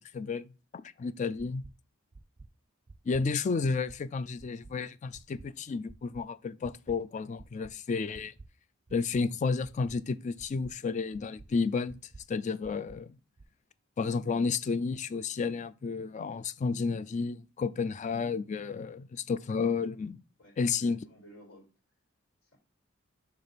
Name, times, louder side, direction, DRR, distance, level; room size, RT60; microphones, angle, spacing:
voice 1, 0.1-1.6 3.1-8.3 8.9-12.0 12.3-13.2 14.0-20.2 20.6-21.0, left 4 dB, 35° left, 0.3 m, -32 dB
sound 1, 1.4-1.7 2.1-2.5 2.9-3.2 3.6-4.0 4.4-4.7 5.1-5.5 5.9-6.2 6.6-7.0 7.4-7.7 8.1-8.5 8.9-9.2 9.6-10.0 10.4-10.7 11.1-11.5 11.9-12.2 12.6-13.0 13.4-13.5, right 3 dB, 30° right, 0.4 m, -50 dB
voice 2, 20.4-21.7 22.4-22.6, equal, 70° left, 2.7 m, -55 dB
6.8 x 3.5 x 4.1 m
head